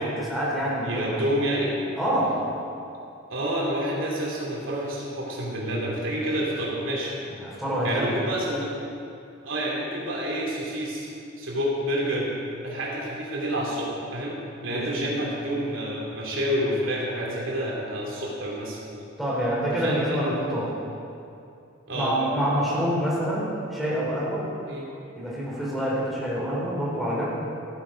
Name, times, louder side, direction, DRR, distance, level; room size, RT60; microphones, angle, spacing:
voice 1, 0.0-1.3 2.0-2.3 7.3-8.2 14.6-14.9 19.2-20.7 21.9-24.4 25.2-27.3, equal, ahead, -7 dB, 3.7 m, -27 dB
voice 2, 0.8-1.7 3.3-7.2 7.8-8.7 9.4-11.1 11.4-12.3 12.6-14.4 14.6-18.8 19.7-20.2 21.9-22.1 24.7-24.9, equal, 80° right, -3 dB, 2.9 m, -28 dB
15.0 x 9.8 x 5.0 m, 2.6 s
head